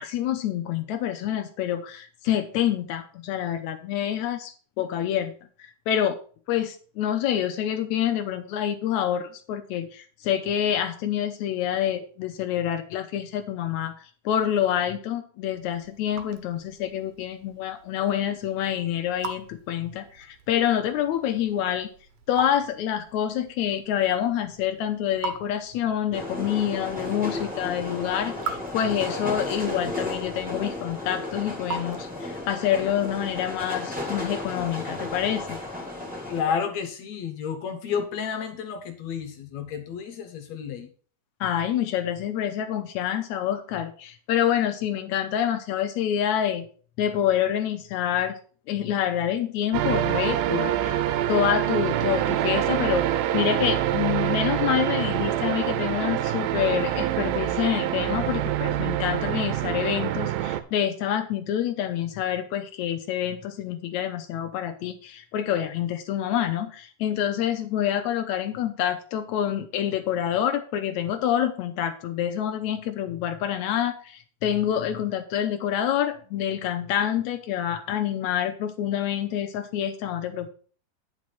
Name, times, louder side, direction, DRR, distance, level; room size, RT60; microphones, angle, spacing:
voice 1, 0.0-5.3 5.6-6.2 6.5-13.9 14.3-21.9 22.3-35.6 41.4-46.7 47.0-48.4 48.7-51.0 51.3-80.5, left 10 dB, 90° left, 7 dB, 1.6 m, -27 dB
Raindrop / Drip, 15.4-32.6, right 4 dB, 65° right, 1.8 m, -42 dB
sound 1, 26.1-36.4, left 1 dB, 5° right, 1.3 m, -33 dB
voice 2, 36.3-40.9, left 7 dB, 70° left, 6 dB, 1.7 m, -31 dB
sound 2, 49.7-60.6, right 12 dB, 85° right, 2.5 m, -25 dB
9.8 x 4.9 x 5.6 m, 0.42 s
omnidirectional pair, 4.1 m